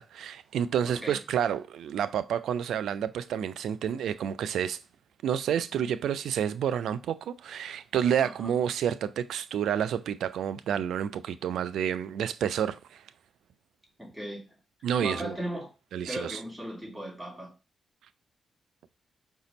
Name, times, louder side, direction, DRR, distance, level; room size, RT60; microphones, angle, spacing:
voice 1, 0.0-4.8 5.2-12.8 14.8-15.3 15.9-16.4, right 9 dB, 80° right, 0.3 m, -29 dB
voice 2, 0.8-1.2 8.2-8.6 14.0-14.4 15.0-15.7 16.1-17.5, right 1 dB, 5° right, 2.8 m, -37 dB
5.0 x 2.7 x 3.9 m
hypercardioid pair, 40°, 0 cm